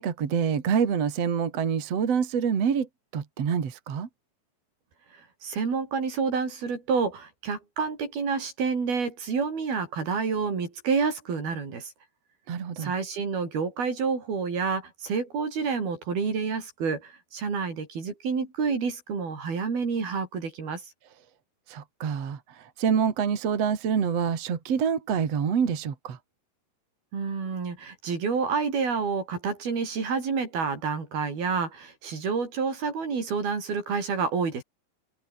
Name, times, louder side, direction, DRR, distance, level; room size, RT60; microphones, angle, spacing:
voice 1, 0.0-2.9 3.1-4.1 12.5-12.9 21.7-26.2, right 7 dB, 45° right, 3.3 m, -26 dB
voice 2, 5.1-11.9 12.8-20.9 27.1-34.6, right 5 dB, 75° right, 7.5 m, -29 dB
omnidirectional pair, 4.4 m